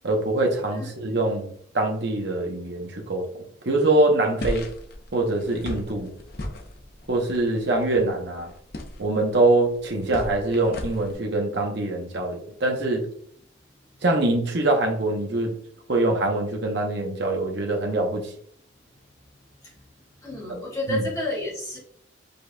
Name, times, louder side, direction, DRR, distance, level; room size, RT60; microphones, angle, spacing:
voice 1, 0.0-3.3 3.7-4.7 5.1-6.1 7.1-8.5 9.0-13.1 14.0-15.6 15.9-18.3 20.9-21.0, right 2 dB, 55° right, 1 dB, 0.8 m, -24 dB
sound 1, 4.4-11.2, left 1 dB, 45° left, 0.7 m, -37 dB
voice 2, 20.2-21.8, left 1 dB, 15° left, -5 dB, 1.7 m, -29 dB
5.2 x 4.0 x 2.2 m, 0.64 s
head